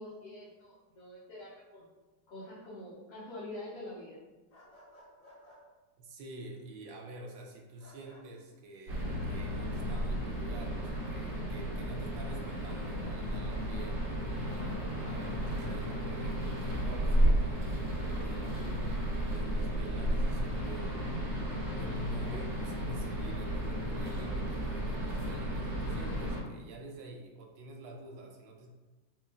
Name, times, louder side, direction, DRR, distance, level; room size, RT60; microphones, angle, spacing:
voice 1, 0.0-1.9 2.3-4.2, left 1 dB, 60° left, -8 dB, 1.1 m, -45 dB
sound 1, 4.5-5.6 7.8-8.2 10.9-11.2 11.9-12.3, equal, 90° left, 1.9 m, -57 dB
voice 2, 6.0-14.0 14.5-18.9 19.3-21.0 21.8-28.7, right 2 dB, 80° right, 0 dB, 1.4 m, -48 dB
sound 2, 8.9-26.4, right 1 dB, 60° right, 1.8 m, -33 dB
4.3 x 2.9 x 2.4 m, 1.2 s
omnidirectional pair, 2.0 m